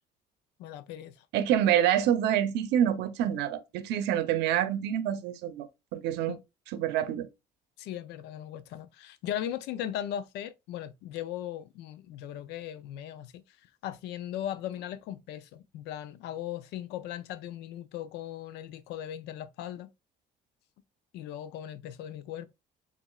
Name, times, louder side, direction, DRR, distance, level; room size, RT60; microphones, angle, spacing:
voice 1, 0.6-1.2 6.3-6.4 7.8-13.6 13.8-19.9 21.1-22.5, left 11 dB, 85° left, 0.5 m, -38 dB
voice 2, 1.3-5.7 5.9-6.4 6.7-7.3, right 10 dB, 85° right, 0.6 m, -27 dB
7.0 x 2.5 x 2.3 m
cardioid pair, 110°, 17 cm